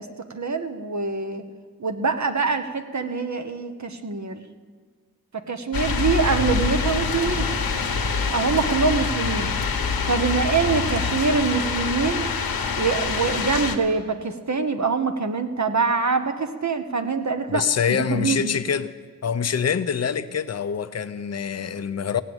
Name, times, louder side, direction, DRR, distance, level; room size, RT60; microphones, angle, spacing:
voice 1, 0.0-1.4 1.8-4.4 5.5-7.6 8.3-9.5 10.1-12.3 12.8-17.6 17.9-18.6, right 4 dB, 50° right, 1.1 m, -24 dB
sound 1, 5.7-13.8, left 5 dB, 75° left, 1.2 m, -25 dB
voice 2, 17.5-18.9 19.2-22.2, left 7 dB, 45° left, 0.6 m, -25 dB
16.5 x 8.5 x 7.9 m
cardioid pair, 60°, 36 cm